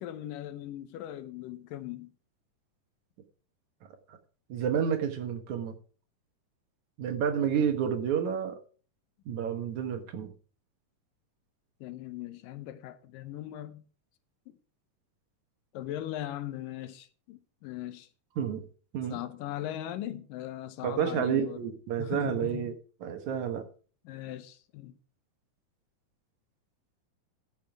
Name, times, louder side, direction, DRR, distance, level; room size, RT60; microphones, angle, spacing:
voice 1, 0.0-2.1 11.8-13.8 15.7-18.1 19.1-21.6 22.0-22.8 24.1-24.9, left 12 dB, 85° left, 2.5 m, -39 dB
voice 2, 4.5-5.7 7.0-8.6 9.3-10.3 18.4-18.6 18.9-19.2 20.8-22.7 23.0-23.7, right 8 dB, 65° right, 2.4 m, -30 dB
14.0 x 7.6 x 4.7 m
omnidirectional pair, 3.9 m